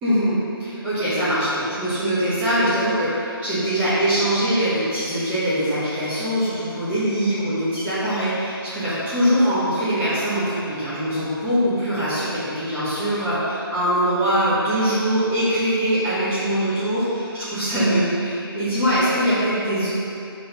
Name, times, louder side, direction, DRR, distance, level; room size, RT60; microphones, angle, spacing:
voice 1, 0.0-19.9, equal, 10° right, -13 dB, 1.4 m, -22 dB
5.4 x 3.9 x 5.3 m, 2.8 s
figure-of-eight pair, 150°, 13 cm